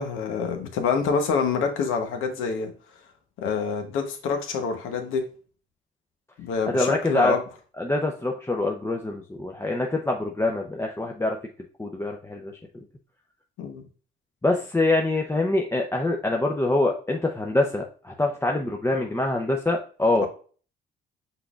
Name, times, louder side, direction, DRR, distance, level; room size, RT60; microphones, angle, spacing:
voice 1, 0.0-2.7 3.4-5.3 6.4-7.4 13.6-13.8, left 5 dB, 85° left, 6 dB, 0.9 m, -26 dB
voice 2, 6.7-7.3 7.8-11.4 11.8-12.5 14.4-20.3, left 2 dB, 10° left, 0 dB, 0.6 m, -25 dB
5.8 x 3.9 x 2.3 m, 0.40 s
cardioid pair, 90°, 20 cm